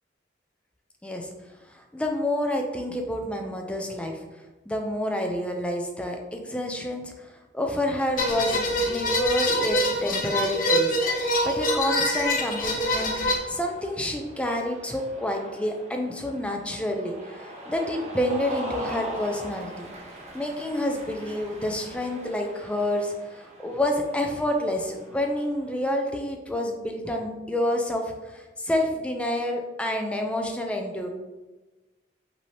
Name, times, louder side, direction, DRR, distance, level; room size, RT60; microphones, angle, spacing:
voice 1, 1.7-4.2 4.7-13.1 13.5-19.9 20.3-31.1, left 1 dB, 5° left, 2 dB, 0.5 m, -28 dB
sound 1, 8.2-13.4, equal, 50° left, 0.9 m, -25 dB
Cheering, 12.3-25.7, right 1 dB, 35° right, 0.6 m, -42 dB
5.2 x 2.8 x 3.3 m, 1.2 s
head